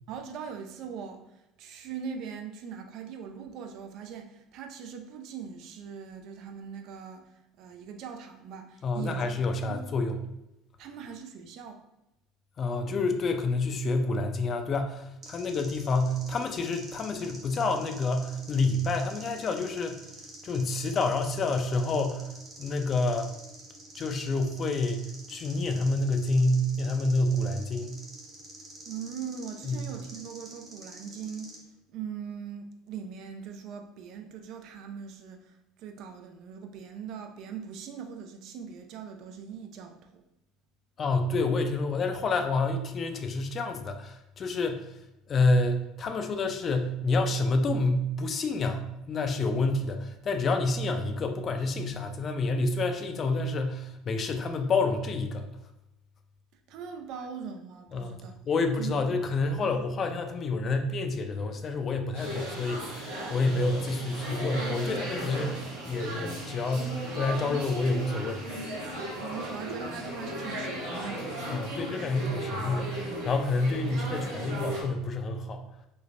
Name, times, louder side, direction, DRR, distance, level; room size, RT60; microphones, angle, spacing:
voice 1, 0.1-7.2 7.6-9.2 9.6-9.8 10.8-11.8 28.9-31.6 31.9-35.5 35.8-40.2 56.7-58.3 58.8-58.9 59.6-59.8 69.2-71.3, right 7 dB, 60° right, 4 dB, 0.3 m, -41 dB
voice 2, 8.8-10.2 12.6-20.0 20.4-22.3 22.6-23.3 23.9-28.0 29.6-29.9 41.0-45.0 45.3-55.5 57.9-68.5 71.5-75.6, left 2 dB, 40° left, 6 dB, 0.4 m, -28 dB
sound 1, 15.2-31.6, right 2 dB, 45° right, 0.8 m, -48 dB
sound 2, 62.1-74.8, right 1 dB, 80° right, 1.0 m, -36 dB
3.2 x 2.0 x 2.4 m, 0.89 s
hypercardioid pair, 75°, 0 cm